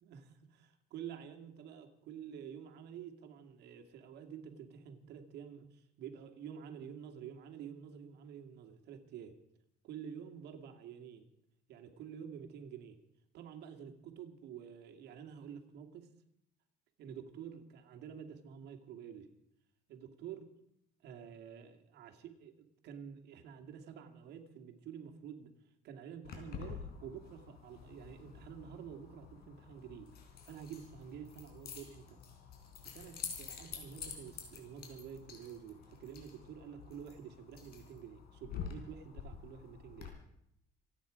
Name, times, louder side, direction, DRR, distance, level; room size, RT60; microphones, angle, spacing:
voice 1, 0.0-9.4 9.8-11.2 11.7-13.0 13.3-16.1 17.0-19.3 19.9-20.5 21.0-25.5 25.8-30.1 30.4-32.2 32.9-40.2, right 8 dB, 80° right, 3 dB, 2.3 m, -49 dB
Keys jangling, 26.2-40.1, left 7 dB, 70° left, 3.7 m, -48 dB
27.0 x 9.4 x 5.1 m, 0.78 s
cardioid pair, 110°, 17 cm